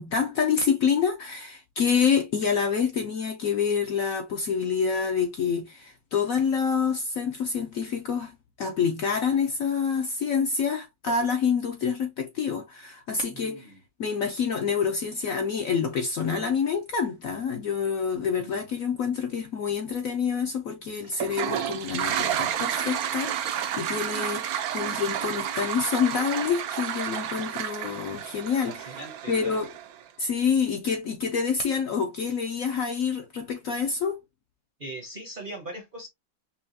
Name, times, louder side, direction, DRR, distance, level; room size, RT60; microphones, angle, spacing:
voice 1, 0.0-13.7 14.0-28.9 29.3-29.7 30.2-34.2, left 6 dB, 65° left, 0.8 m, -27 dB
voice 2, 13.3-13.8 18.4-18.6 28.7-29.6 34.8-36.1, right 1 dB, 40° right, 0.7 m, -40 dB
Toilet flush, 21.1-30.0, right 10 dB, 70° right, 0.9 m, -31 dB
5.7 x 2.3 x 2.6 m
omnidirectional pair, 2.0 m